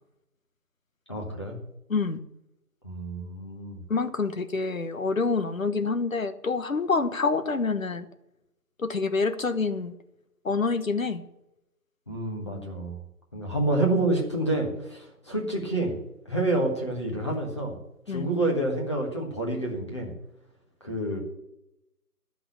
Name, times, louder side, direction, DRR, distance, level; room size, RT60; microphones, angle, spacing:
voice 1, 1.1-1.6 2.8-3.8 12.1-13.0 13.3-15.9 16.3-17.8 18.1-20.1 20.8-21.2, right 2 dB, 20° left, -1 dB, 1.5 m, -28 dB
voice 2, 1.9-2.2 3.9-8.0 8.8-9.9 10.4-11.2 18.1-18.3, left 4 dB, 60° left, 10 dB, 1.2 m, -27 dB
12.5 x 5.9 x 8.5 m, 0.87 s
figure-of-eight pair, 175°, 47 cm